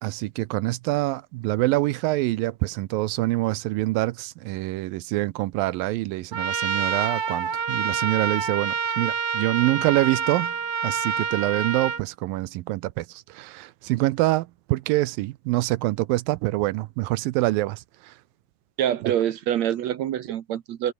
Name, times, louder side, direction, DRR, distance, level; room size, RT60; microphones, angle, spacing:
voice 1, 0.0-10.6 10.8-18.1 19.0-19.1, right 18 dB, 80° right, 2.4 m, -25 dB
Trumpet, 6.3-12.0, right 6 dB, 40° right, 2.2 m, -27 dB
voice 2, 18.8-20.9, right 11 dB, 65° right, 2.0 m, -25 dB
omnidirectional pair, 4.2 m